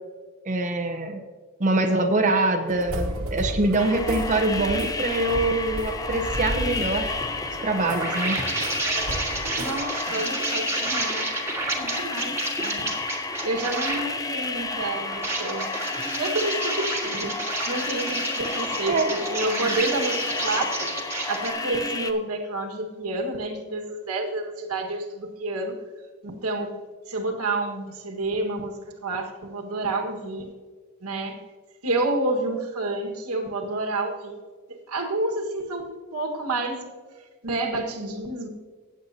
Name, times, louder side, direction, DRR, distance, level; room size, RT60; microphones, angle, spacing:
voice 1, 0.4-1.2 1.6-7.2 7.6-8.4 18.9-19.1, right 2 dB, 35° right, 4 dB, 0.7 m, -24 dB
sound 1, 2.7-9.8, equal, 70° right, 1.4 m, -34 dB
sound 2, 3.8-22.1, left 3 dB, 15° left, 0.6 m, -31 dB
sound 3, 7.2-14.1 14.9-21.5, right 2 dB, 10° right, 1.6 m, -31 dB
voice 2, 9.6-11.3 11.7-12.9 13.4-15.7 16.0-17.4 17.7-20.9 21.3-25.8 26.2-26.7 27.1-30.5 31.0-31.4 31.8-34.4 34.7-36.8 37.4-38.5, right 2 dB, 85° right, 3 dB, 1.6 m, -29 dB
15.5 x 8.6 x 2.8 m, 1.5 s
head